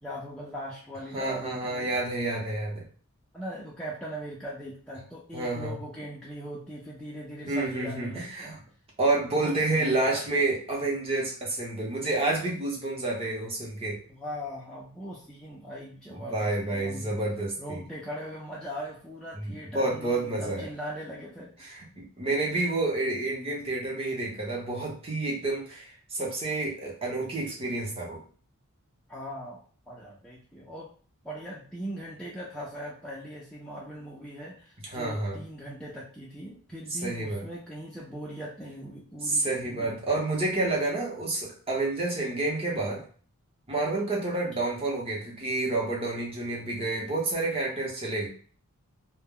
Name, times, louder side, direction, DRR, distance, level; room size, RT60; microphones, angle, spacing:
voice 1, 0.0-1.9 3.3-8.6 9.3-10.3 14.1-17.1 17.6-21.7 29.1-30.9 31.2-39.9, equal, 5° left, -6 dB, 0.4 m, -40 dB
voice 2, 1.1-2.8 5.3-5.8 7.5-8.6 9.0-14.0 16.1-17.8 19.4-20.7 21.6-28.2 34.8-35.4 36.9-37.4 39.2-43.0 43.7-48.3, right 2 dB, 25° right, -2 dB, 0.7 m, -29 dB
2.1 x 2.1 x 3.5 m, 0.43 s
head